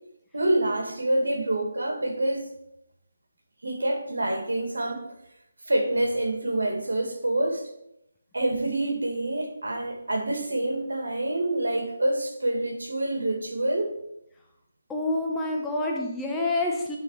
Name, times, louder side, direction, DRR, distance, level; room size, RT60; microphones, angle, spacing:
voice 1, 0.3-2.5 3.6-5.0 5.7-7.6 8.3-14.0, right 1 dB, 85° right, 3 dB, 1.9 m, -27 dB
voice 2, 14.9-17.0, left 2 dB, 5° left, -2 dB, 1.0 m, -27 dB
10.5 x 3.8 x 4.8 m, 0.79 s
figure-of-eight pair, 160°, 0 cm